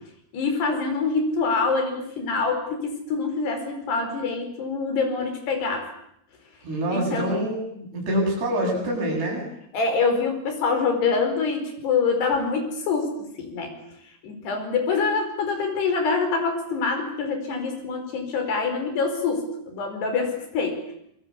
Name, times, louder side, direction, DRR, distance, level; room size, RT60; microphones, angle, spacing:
voice 1, 0.3-5.9 6.9-7.4 9.7-13.8 14.2-20.9, left 4 dB, 85° left, 6 dB, 7.0 m, -25 dB
voice 2, 6.6-9.5, right 1 dB, 85° right, 0 dB, 10.0 m, -26 dB
26.0 x 24.5 x 8.5 m, 0.73 s
omnidirectional pair, 4.6 m